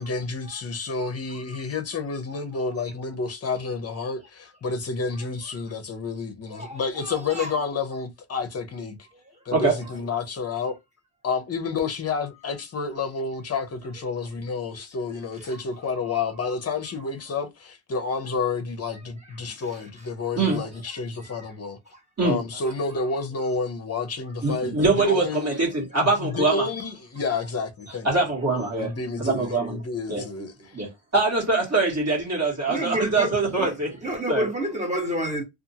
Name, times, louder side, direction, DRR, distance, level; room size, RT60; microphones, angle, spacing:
voice 1, 0.0-9.0 9.5-10.8 11.2-21.8 22.2-25.4 26.2-28.1 28.8-30.7, left 4 dB, 30° left, 0.7 m, -30 dB
voice 2, 6.5-7.5 15.4-15.6 21.2-21.4 32.7-33.7 34.0-35.4, right 1 dB, 15° right, 1.1 m, -30 dB
voice 3, 24.4-26.7 28.0-28.9 29.2-29.8 30.1-30.2 30.7-33.9 34.3-34.5, right 3 dB, 30° right, 1.5 m, -23 dB
2.6 x 2.5 x 2.7 m
cardioid pair, 110°, 48 cm